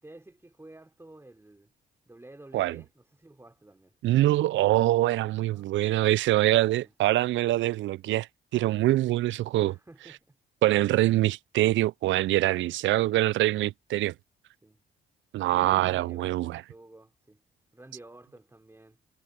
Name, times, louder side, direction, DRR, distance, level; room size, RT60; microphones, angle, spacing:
voice 1, 0.0-1.7 2.1-3.9 5.5-5.7 6.7-6.9 9.5-10.4 12.5-13.6 14.6-14.8 15.5-17.4 17.7-19.0, right 2 dB, 15° right, 4.7 m, -51 dB
voice 2, 4.0-8.3 8.5-9.7 10.6-14.1 15.3-16.6, right 15 dB, 70° right, 0.4 m, -24 dB
cardioid pair, 90°, 20 cm